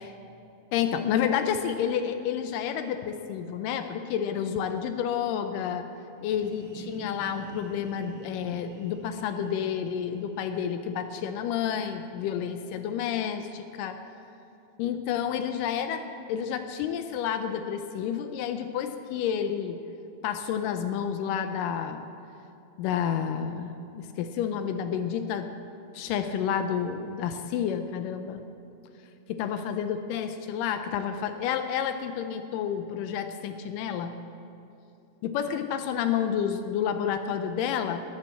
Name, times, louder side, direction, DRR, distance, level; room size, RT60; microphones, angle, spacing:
voice 1, 0.7-5.9 6.2-14.0 14.8-19.8 20.2-22.1 22.8-25.5 25.9-28.4 29.3-34.1 35.2-38.0, left 8 dB, 85° left, 7 dB, 2.3 m, -30 dB
sound 1, 6.1-13.7, right 1 dB, 30° right, 2.7 m, -48 dB
13.0 x 10.5 x 7.1 m, 2.8 s
omnidirectional pair, 3.7 m